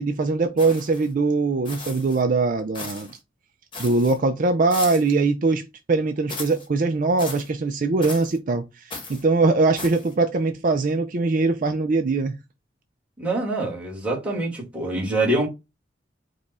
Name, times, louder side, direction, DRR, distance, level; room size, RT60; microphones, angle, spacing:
voice 1, 0.0-3.2 3.8-12.4, right 3 dB, 45° right, 0.4 m, -22 dB
sound 1, 0.6-1.1 1.6-2.2 2.7-3.2 3.7-4.2 4.7-5.2 6.3-6.7 7.2-7.5 8.0-8.4 8.9-9.2 9.8-10.1, left 3 dB, 30° left, 1.1 m, -36 dB
voice 2, 13.2-15.5, right 2 dB, 5° right, 1.8 m, -25 dB
5.0 x 2.3 x 4.1 m
head